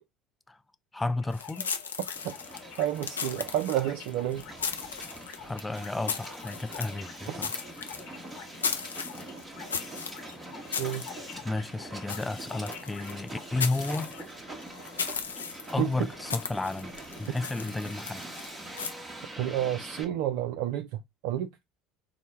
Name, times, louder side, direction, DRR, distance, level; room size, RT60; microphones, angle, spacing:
voice 1, 0.9-1.7 5.4-7.5 11.1-11.2 11.4-14.2 15.7-16.9 17.2-18.3, left 2 dB, 10° left, 0.4 m, -32 dB
sound 1, 1.1-14.2, left 8 dB, 65° left, 0.9 m, -49 dB
sound 2, 1.3-18.9, left 6 dB, 85° left, 0.4 m, -37 dB
Hiss, 2.1-20.0, right 2 dB, 20° right, 1.0 m, -44 dB
voice 2, 2.8-4.4 7.3-7.4 10.8-11.0 15.8-15.9 19.4-21.5, right 12 dB, 65° right, 0.3 m, -30 dB
4.3 x 2.0 x 4.4 m
figure-of-eight pair, 65°, 0 cm